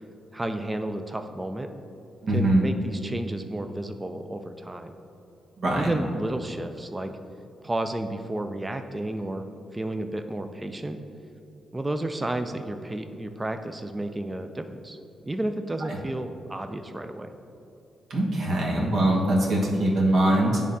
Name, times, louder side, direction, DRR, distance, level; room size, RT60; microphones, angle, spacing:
voice 1, 0.3-1.7 2.3-4.9 5.7-7.1 7.6-9.4 9.7-11.0 11.7-15.0 15.2-17.3, right 1 dB, 20° right, 7 dB, 0.4 m, -32 dB
voice 2, 2.2-2.7 5.6-6.0 18.1-20.6, right 1 dB, 65° right, -3 dB, 1.3 m, -22 dB
10.0 x 3.6 x 2.7 m, 2.8 s
cardioid pair, 80°, 0 cm